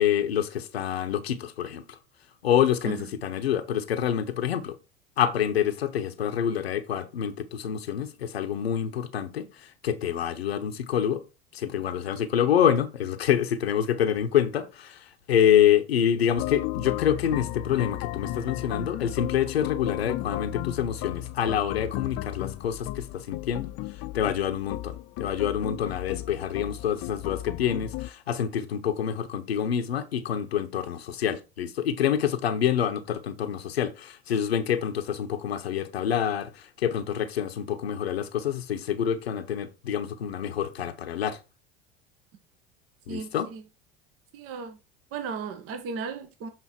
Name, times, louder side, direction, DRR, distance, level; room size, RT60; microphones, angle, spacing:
voice 1, 0.0-2.0 2.4-4.8 5.2-11.2 11.5-23.7 24.1-41.4 43.1-43.5, left 9 dB, 85° left, 0.8 m, -27 dB
sound 1, 16.4-28.1, left 16 dB, 50° left, 0.4 m, -34 dB
voice 2, 43.1-43.6 44.3-44.8 45.1-46.5, right 5 dB, 50° right, 1.1 m, -35 dB
7.6 x 3.7 x 4.3 m
hypercardioid pair, 75°, 30 cm